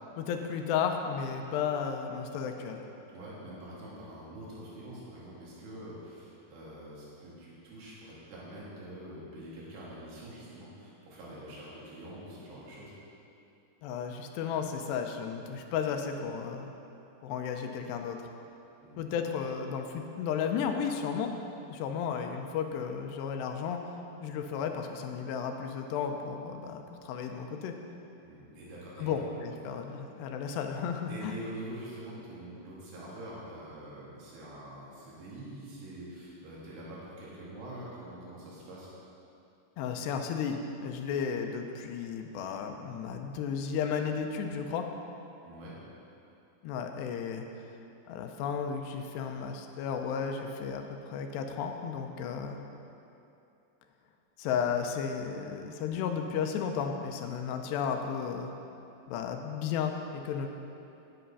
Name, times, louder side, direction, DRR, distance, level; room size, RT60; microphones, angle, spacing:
voice 1, 0.2-2.9 13.8-16.7 17.2-18.2 19.0-21.3 21.7-23.9 24.2-27.8 29.0-31.3 39.8-44.9 46.6-47.5 48.1-52.6 54.4-58.5 59.1-60.5, left 7 dB, 90° left, 4 dB, 2.9 m, -33 dB
voice 2, 3.1-12.9 18.8-19.1 28.2-29.2 31.1-38.9 45.4-45.7, right 1 dB, 80° right, -7 dB, 4.2 m, -45 dB
10.5 x 8.9 x 5.5 m, 2.8 s
omnidirectional pair, 4.8 m